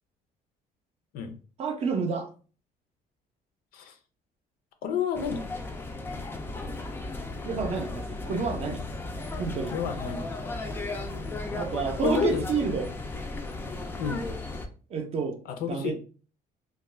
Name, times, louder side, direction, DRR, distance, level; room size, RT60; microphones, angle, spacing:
voice 1, 1.6-2.3 6.1-6.2 6.7-6.8 7.4-8.8 9.4-9.7 11.5-12.9 14.9-15.4 15.7-15.9, right 5 dB, 40° right, 0.5 m, -29 dB
voice 2, 4.8-5.4 9.7-10.2 12.0-12.5 14.0-14.2 15.5-15.9, left 6 dB, 65° left, 0.5 m, -29 dB
sound 1, 5.1-14.7, left 2 dB, 15° left, 0.3 m, -35 dB
2.3 x 2.2 x 3.2 m
cardioid pair, 145°, 16 cm